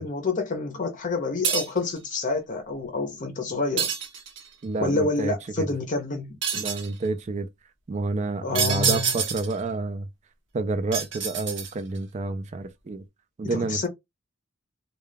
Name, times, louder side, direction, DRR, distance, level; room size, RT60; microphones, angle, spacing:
voice 1, 0.0-3.9 4.8-6.7 8.4-9.1 13.4-13.9, left 3 dB, 40° left, 0.6 m, -28 dB
sound 1, 1.4-1.9 3.8-4.5 6.4-6.9 8.5-9.6 10.9-12.0, right 7 dB, 60° right, 0.7 m, -27 dB
voice 2, 4.6-5.7 6.6-7.5 7.9-10.1 10.5-13.0 13.4-13.8, right 3 dB, 35° right, 0.4 m, -29 dB
2.3 x 2.2 x 3.2 m
head